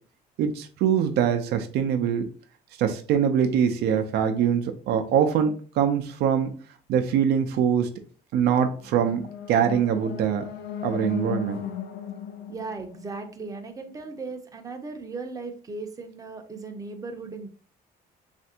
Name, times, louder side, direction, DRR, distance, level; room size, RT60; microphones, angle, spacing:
voice 1, 0.4-2.3 2.8-6.5 6.9-7.9 8.3-10.5 10.8-11.6, right 8 dB, 75° right, 8 dB, 0.5 m, -23 dB
sound 1, 8.8-13.9, left 8 dB, 85° left, 0.4 m, -36 dB
voice 2, 12.5-17.5, right 3 dB, 20° right, 5 dB, 0.5 m, -37 dB
3.3 x 2.5 x 2.7 m, 0.42 s
cardioid pair, 110°, 17 cm